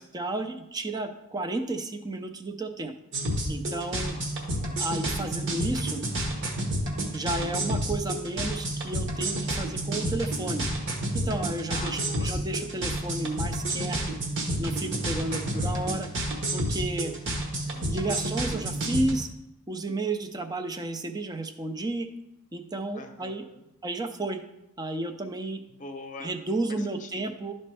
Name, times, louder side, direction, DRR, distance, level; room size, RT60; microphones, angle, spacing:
voice 1, 0.0-2.9 3.5-4.2 4.8-6.0 7.1-10.6 11.3-14.2 14.6-16.1 16.5-17.1 17.9-19.3 19.7-22.1 22.5-23.4 23.8-24.4 24.8-25.6 26.2-27.5, right 2 dB, 20° right, 7 dB, 0.5 m, -32 dB
sound 1, 3.1-19.1, right 1 dB, 55° right, 1.3 m, -30 dB
voice 2, 4.1-4.8 11.7-12.3 15.3-15.9 17.7-18.4 22.9-23.7 25.7-26.3 26.7-27.2, left 3 dB, 35° left, 5 dB, 0.8 m, -44 dB
11.5 x 4.2 x 3.4 m, 0.90 s
head